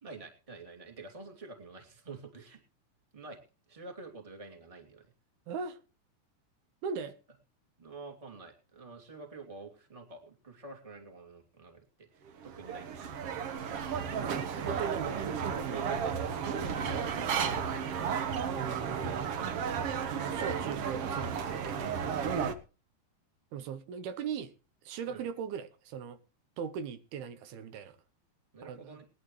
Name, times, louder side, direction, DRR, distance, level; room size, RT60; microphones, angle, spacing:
voice 1, 0.0-2.6 3.1-3.4 3.7-5.1 7.8-13.3 14.5-15.2 15.7-17.7 25.0-25.2 28.5-29.1, right 3 dB, 10° right, 2.1 m, -48 dB
voice 2, 5.5-5.8 6.8-7.2 14.2-15.2 15.6-15.9 18.5-19.8 20.1-21.9 23.5-24.5 24.8-26.2 26.6-28.0 28.6-29.0, right 7 dB, 85° right, 3.0 m, -39 dB
sound 1, 12.3-22.5, right 7 dB, 70° right, 1.4 m, -33 dB
20.5 x 11.0 x 3.1 m
omnidirectional pair, 4.4 m